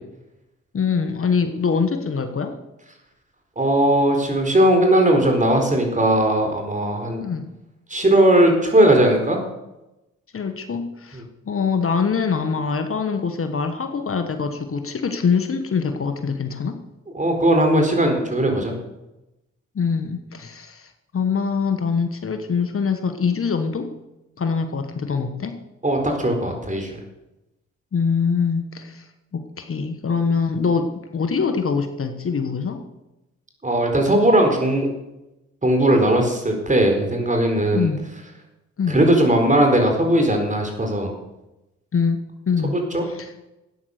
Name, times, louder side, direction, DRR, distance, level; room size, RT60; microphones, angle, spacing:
voice 1, 0.7-2.6 7.2-7.5 10.3-16.8 19.7-23.9 24.4-25.6 27.9-32.8 37.7-38.0 38.8-39.0 41.9-42.2 42.5-42.8 43.1-43.3, left 5 dB, 50° left, 7 dB, 1.4 m, -24 dB
voice 2, 3.6-7.2 7.9-9.4 11.1-11.2 17.1-18.7 25.8-27.0 33.6-34.9 35.6-37.9 38.9-41.1 42.6-43.0, right 1 dB, 25° right, 3 dB, 4.3 m, -18 dB
13.5 x 9.3 x 6.6 m, 0.96 s
cardioid pair, 65°, 29 cm